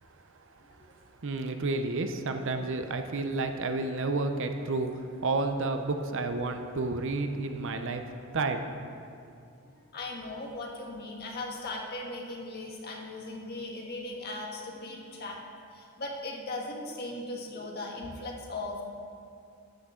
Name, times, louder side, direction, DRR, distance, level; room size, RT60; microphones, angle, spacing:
voice 1, 1.2-4.9 5.2-8.0 8.3-8.7, right 3 dB, 60° right, 7 dB, 0.6 m, -30 dB
voice 2, 9.6-15.4 15.7-18.8, left 2 dB, 45° left, -1 dB, 1.6 m, -38 dB
13.0 x 8.5 x 3.8 m, 2.5 s
head